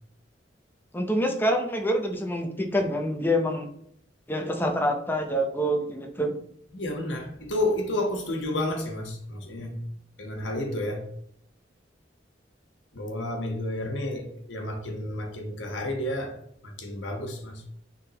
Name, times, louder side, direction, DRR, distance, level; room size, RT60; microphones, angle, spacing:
voice 1, 0.9-3.7 4.3-6.3, equal, 10° left, 0.7 m, -26 dB
voice 2, 6.7-9.8 10.2-11.1 12.9-17.7, left 1 dB, 85° left, 1.3 m, -31 dB
9.2 x 3.8 x 2.9 m
head